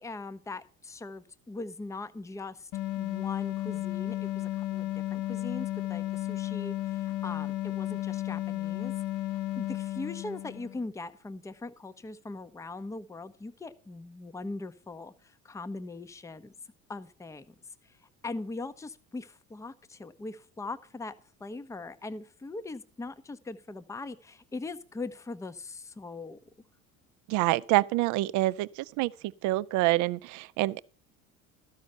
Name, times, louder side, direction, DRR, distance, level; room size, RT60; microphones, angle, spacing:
voice 1, 0.0-2.7 3.0-8.9 9.6-16.5 16.9-17.5 17.8-18.0 18.2-21.1 21.4-26.4, left 3 dB, 5° left, 0.6 m, -40 dB
sound 1, 2.7-10.8, left 15 dB, 50° left, 0.7 m, -33 dB
voice 2, 27.3-29.1 29.4-30.8, right 18 dB, 45° right, 0.5 m, -26 dB
13.0 x 5.6 x 7.7 m
figure-of-eight pair, 60°, 41 cm